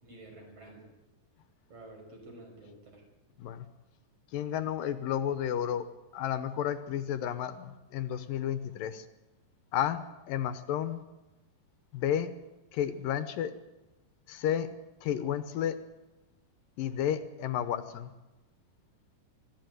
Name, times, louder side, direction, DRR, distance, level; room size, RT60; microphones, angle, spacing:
voice 1, 0.0-0.8 1.7-3.0, right 2 dB, 40° right, 2 dB, 6.7 m, -50 dB
voice 2, 4.3-5.9 6.1-9.1 9.7-11.0 11.9-12.3 12.7-13.5 14.3-14.7 15.0-15.8 16.8-18.1, left 10 dB, 75° left, 10 dB, 2.6 m, -32 dB
25.0 x 14.0 x 9.5 m, 1.0 s
omnidirectional pair, 4.1 m